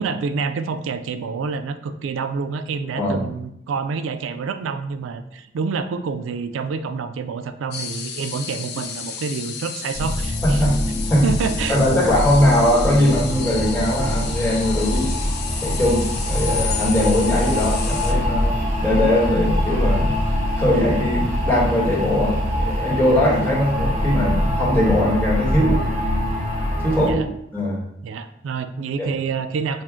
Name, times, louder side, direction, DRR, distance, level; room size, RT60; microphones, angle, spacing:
voice 1, 0.0-10.6 11.2-11.8 27.0-27.3 28.0-29.8, right 5 dB, 90° right, 10 dB, 0.3 m, -27 dB
sound 1, 7.7-18.1, left 7 dB, 55° left, 0.5 m, -32 dB
sound 2, 9.9-27.1, left 1 dB, 35° right, 0.9 m, -23 dB
voice 2, 10.4-11.2 11.7-15.3 15.6-18.5 18.8-20.1 20.6-25.8 26.8-27.2 27.5-27.8 29.0-29.1, left 1 dB, 10° left, -7 dB, 1.4 m, -20 dB
6.0 x 2.4 x 3.6 m, 0.78 s
head